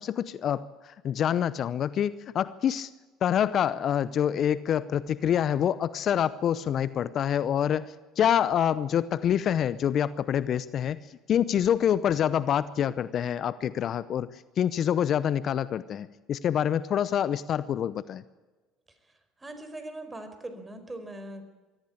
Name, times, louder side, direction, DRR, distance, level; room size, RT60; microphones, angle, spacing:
voice 1, 0.0-2.9 3.2-18.2, left 9 dB, 50° left, 16 dB, 0.7 m, -26 dB
voice 2, 19.4-21.5, right 1 dB, 15° right, 9 dB, 4.7 m, -40 dB
23.0 x 14.5 x 8.7 m, 1.2 s
hypercardioid pair, 70°, 0 cm